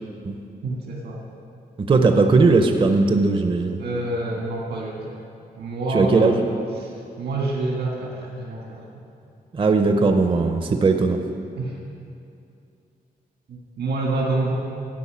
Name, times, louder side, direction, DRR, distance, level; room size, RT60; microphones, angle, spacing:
voice 1, 0.6-1.2 3.8-5.1 5.6-6.4 6.8-6.9 7.2-8.8 11.6-11.8 13.5-14.5, right 2 dB, 85° right, -2 dB, 1.7 m, -27 dB
voice 2, 1.8-3.8 5.9-6.4 9.5-11.2, right 3 dB, 30° right, 6 dB, 0.6 m, -18 dB
12.5 x 5.5 x 8.5 m, 2.6 s
wide cardioid pair, 150°, 16 cm